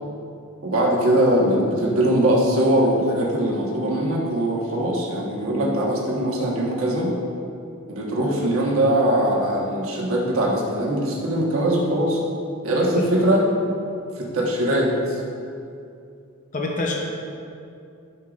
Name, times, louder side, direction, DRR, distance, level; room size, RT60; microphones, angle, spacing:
voice 1, 0.6-7.1 7.9-12.2 12.6-13.4 14.2-15.2, right 1 dB, 70° right, -4 dB, 1.3 m, -21 dB
voice 2, 16.5-16.9, left 2 dB, 35° left, -1 dB, 0.7 m, -25 dB
11.0 x 5.6 x 2.5 m, 2.5 s
head